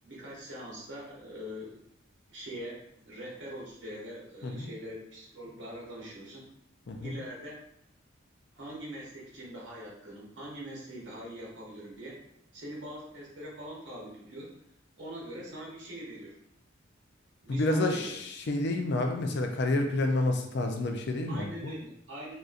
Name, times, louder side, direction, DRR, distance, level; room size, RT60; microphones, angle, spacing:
voice 1, 0.0-1.8 2.3-6.4 7.0-7.6 8.5-12.2 12.5-14.5 15.0-16.4 17.4-18.2 21.3-22.4, equal, 65° right, -4 dB, 0.9 m, -42 dB
voice 2, 17.5-21.7, left 2 dB, 55° left, 4 dB, 0.4 m, -29 dB
3.8 x 2.5 x 2.4 m, 0.76 s
head